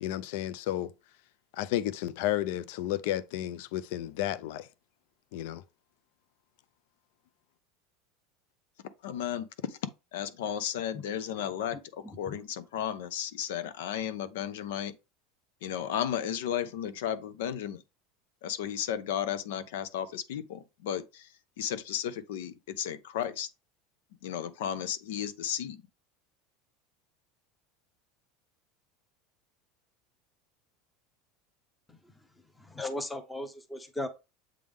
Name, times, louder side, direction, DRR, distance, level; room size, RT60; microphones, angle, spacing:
voice 1, 0.0-0.9 1.5-4.7 5.3-5.6, left 13 dB, 60° left, 0.5 m, -32 dB
voice 2, 9.0-9.8 10.1-14.9 15.6-17.8 18.4-21.3 21.6-23.5 24.2-25.8, left 9 dB, 90° left, 0.8 m, -34 dB
voice 3, 11.4-12.4 31.9-32.0 32.6-34.1, left 1 dB, 5° left, 0.7 m, -38 dB
7.6 x 3.5 x 3.6 m
supercardioid pair, 175°, 0 cm